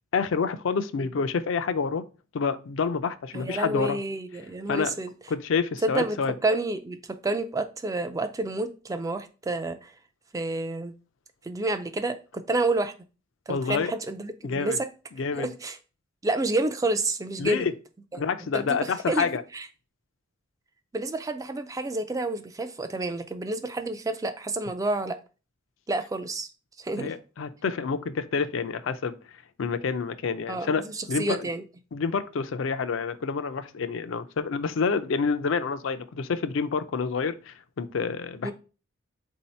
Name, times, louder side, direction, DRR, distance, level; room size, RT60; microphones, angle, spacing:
voice 1, 0.1-2.0 2.3-4.0 4.7-5.0 5.3-6.3 13.5-13.9 14.4-14.8 15.2-15.5 17.4-17.7 18.1-19.4 27.0-29.2 29.6-30.8 31.1-31.5 31.9-38.5, left 5 dB, 70° left, 11 dB, 0.4 m, -28 dB
voice 2, 3.3-5.1 5.8-9.9 10.3-10.9 11.4-12.9 13.5-14.9 15.4-15.8 16.2-17.7 18.1-18.2 18.5-19.3 19.5-19.7 20.9-25.2 25.9-26.5 26.8-27.1 30.5-31.6 38.4-38.5, right 2 dB, 15° right, 9 dB, 0.3 m, -29 dB
3.9 x 2.7 x 4.2 m, 0.33 s
head